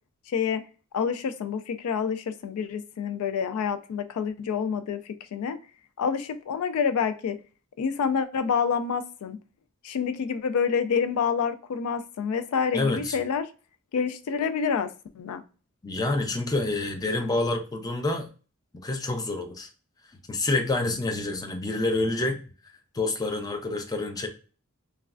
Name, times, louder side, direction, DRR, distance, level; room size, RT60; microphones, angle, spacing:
voice 1, 0.3-0.6 0.9-5.6 6.0-7.4 7.8-9.4 9.8-13.4 13.9-15.4, left 6 dB, 85° left, 11 dB, 0.3 m, -28 dB
voice 2, 12.7-13.2 15.8-18.3 18.7-19.7 20.3-22.4 22.9-24.3, left 2 dB, 15° left, 4 dB, 0.4 m, -27 dB
3.1 x 2.3 x 2.4 m, 0.36 s
head